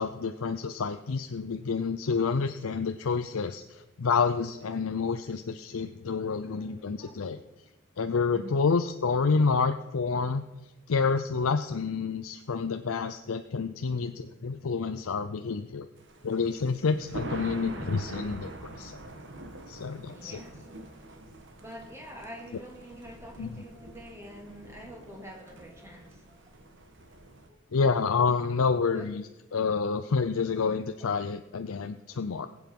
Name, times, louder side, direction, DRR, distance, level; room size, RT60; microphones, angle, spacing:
voice 1, 0.0-7.4 8.0-10.4 10.9-15.9 16.2-19.0 19.7-20.3 23.4-23.5 27.7-29.2 29.5-32.5, left 5 dB, 80° left, 8 dB, 0.6 m, -28 dB
voice 2, 6.4-7.4 8.3-8.6 20.1-21.1 21.6-26.6 27.5-27.6 28.9-29.1 31.0-31.1 32.1-32.2, equal, 10° right, 1 dB, 2.2 m, -47 dB
Thunder, 16.0-27.5, right 1 dB, 55° right, 1.4 m, -44 dB
20.0 x 8.1 x 5.4 m, 1.0 s
head